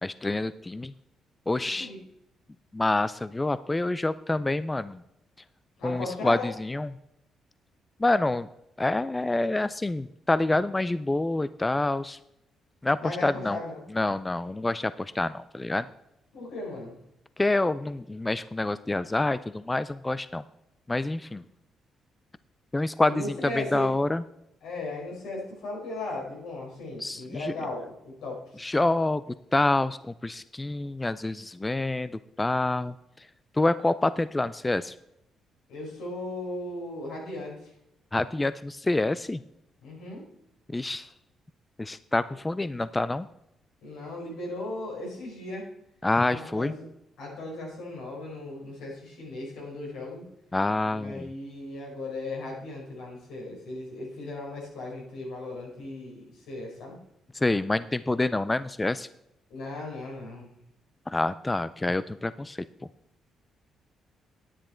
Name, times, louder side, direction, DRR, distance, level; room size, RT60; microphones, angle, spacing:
voice 1, 0.0-0.9 1.5-1.9 2.7-5.0 5.8-6.9 8.0-8.5 8.8-12.2 12.8-13.6 13.9-15.9 17.4-20.4 20.9-21.4 22.7-24.2 27.0-27.5 28.6-29.2 29.5-33.3 33.5-35.0 38.1-39.4 40.7-41.1 41.8-43.3 46.0-46.7 50.5-51.3 57.3-59.1 61.1-62.6, left 2 dB, 15° left, 15 dB, 0.4 m, -27 dB
voice 2, 5.8-6.5 13.0-13.8 16.3-17.0 23.1-23.9 24.6-28.7 35.7-37.7 39.8-40.3 43.8-45.7 46.2-46.9 47.2-50.3 50.8-57.0 59.5-60.5, left 2 dB, 85° left, -3 dB, 4.8 m, -37 dB
10.0 x 9.4 x 4.4 m, 0.82 s
cardioid pair, 90°, 0 cm